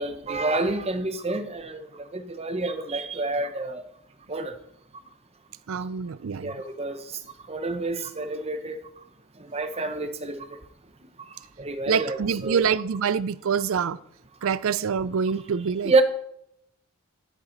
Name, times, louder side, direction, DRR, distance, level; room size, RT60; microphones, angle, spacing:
voice 1, 0.0-3.8 4.3-4.6 6.4-8.8 9.4-10.6 11.2-12.6 15.8-16.0, right 2 dB, 25° right, 0.9 m, -28 dB
voice 2, 5.7-6.5 11.9-14.0 14.4-15.9, right 6 dB, 60° right, 0.4 m, -26 dB
11.5 x 10.5 x 4.0 m
head